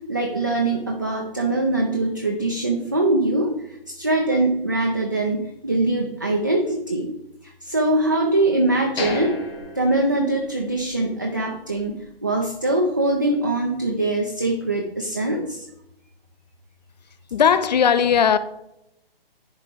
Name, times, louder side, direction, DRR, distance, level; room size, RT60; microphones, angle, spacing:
voice 1, 0.1-7.1 7.4-9.4 9.8-15.7, right 2 dB, 20° right, 0.3 m, -23 dB
sound 1, 9.0-10.9 11.2-11.3 11.8-12.0, left 3 dB, 70° left, 2.3 m, -33 dB
voice 2, 17.3-18.4, left 7 dB, 45° left, 0.5 m, -17 dB
10.5 x 4.3 x 3.8 m
figure-of-eight pair, 150°, 30 cm